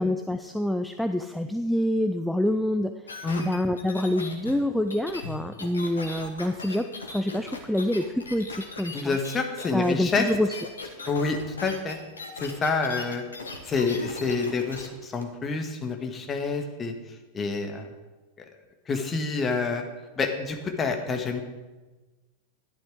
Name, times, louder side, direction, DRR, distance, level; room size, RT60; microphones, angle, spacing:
voice 1, 0.0-9.2 9.7-10.6 10.8-10.9, left 1 dB, ahead, 7 dB, 0.5 m, -27 dB
sound 1, 3.1-14.9 15.2-15.3, left 3 dB, 75° left, 1.6 m, -39 dB
voice 2, 8.9-10.3 11.1-12.0 12.4-13.2 13.6-16.9 17.3-17.9 18.9-19.8 20.2-21.4, left 4 dB, 20° left, 4 dB, 1.6 m, -28 dB
11.5 x 10.0 x 4.9 m, 1.2 s
figure-of-eight pair, 90°, 0 cm